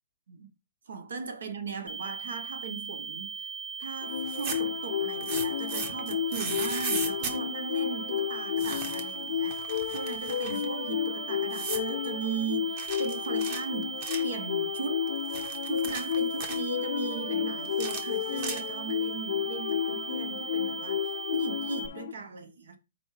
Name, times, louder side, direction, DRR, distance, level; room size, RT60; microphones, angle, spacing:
voice 1, 0.9-3.5 3.8-14.0 14.2-15.1 15.6-22.8, right 5 dB, 85° right, 1.3 m, -38 dB
sound 1, 1.9-21.9, right 6 dB, 10° right, 0.6 m, -39 dB
sound 2, 4.0-22.1, left 9 dB, 60° left, 0.5 m, -32 dB
sound 3, 4.2-4.8 5.2-7.4 8.6-9.2 9.5-10.7 11.5-11.9 12.8-14.3 15.1-16.6 17.6-18.9, right 5 dB, 35° right, 1.1 m, -37 dB
5.2 x 4.4 x 4.9 m
hypercardioid pair, 170°, 0 cm